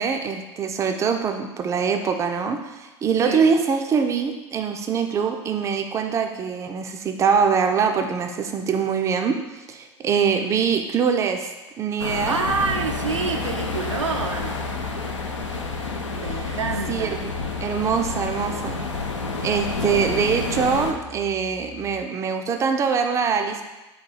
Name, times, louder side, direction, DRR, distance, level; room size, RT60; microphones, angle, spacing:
voice 1, 0.0-11.5 11.8-12.4 16.9-17.3 17.6-18.8 19.4-23.6, right 6 dB, 20° right, 5 dB, 0.4 m, -23 dB
voice 2, 3.2-3.5 12.3-14.7 16.2-17.2, right 4 dB, 90° right, 3 dB, 0.4 m, -27 dB
sound 1, 12.0-20.9, left 3 dB, 90° left, 0.5 m, -29 dB
Piano, 12.4-22.0, left 4 dB, 70° left, 0.9 m, -39 dB
4.1 x 2.3 x 4.5 m, 1.1 s
figure-of-eight pair, 90°, 15 cm